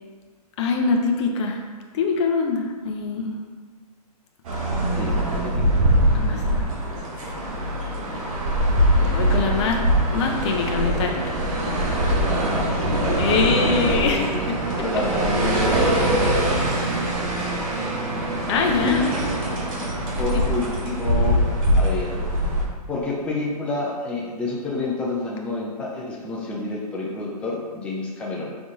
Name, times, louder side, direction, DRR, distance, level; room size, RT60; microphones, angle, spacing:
voice 1, 0.6-1.6 1.9-3.4 6.1-6.7 9.0-9.8 10.1-11.4 13.2-14.2 18.5-19.0, left 4 dB, 45° left, 2 dB, 0.6 m, -23 dB
sound 1, 4.4-22.6, right 1 dB, 55° right, 1.4 m, -22 dB
voice 2, 5.0-5.8 12.3-13.4 13.9-16.6 18.7-19.4 20.2-21.4 21.7-22.2 22.9-28.6, left 3 dB, 5° left, -4 dB, 0.4 m, -29 dB
4.0 x 3.5 x 3.7 m, 1.5 s
hypercardioid pair, 135°, 20 cm